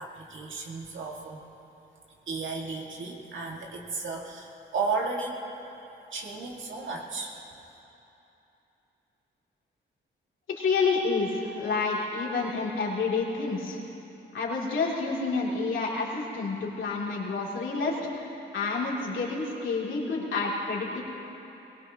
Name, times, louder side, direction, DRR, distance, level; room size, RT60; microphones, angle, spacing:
voice 1, 0.0-1.4 2.3-5.4 6.1-7.4, right 4 dB, 75° right, -1 dB, 2.1 m, -34 dB
voice 2, 10.6-13.8 14.3-21.0, left 4 dB, 75° left, -5 dB, 3.2 m, -29 dB
21.5 x 18.0 x 3.0 m, 3.0 s
cardioid pair, 75°, 20 cm